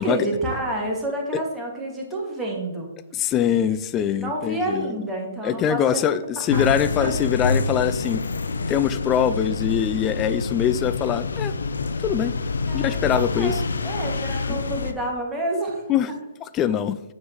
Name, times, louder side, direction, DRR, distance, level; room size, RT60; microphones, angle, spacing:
voice 1, 0.0-2.9 4.2-6.0 6.5-6.7 7.0-7.1 12.7-13.0 13.3-15.8, right 1 dB, 10° right, 2.1 m, -28 dB
voice 2, 3.1-5.0 5.4-8.2 8.7-11.5 12.0-12.4 12.7-13.6 14.5-14.6 15.9-16.1 16.5-17.0, left 9 dB, 20° left, 0.4 m, -23 dB
sound 1, 6.5-14.9, left 3 dB, 65° left, 0.6 m, -27 dB
9.4 x 7.3 x 3.1 m
figure-of-eight pair, 125°, 0 cm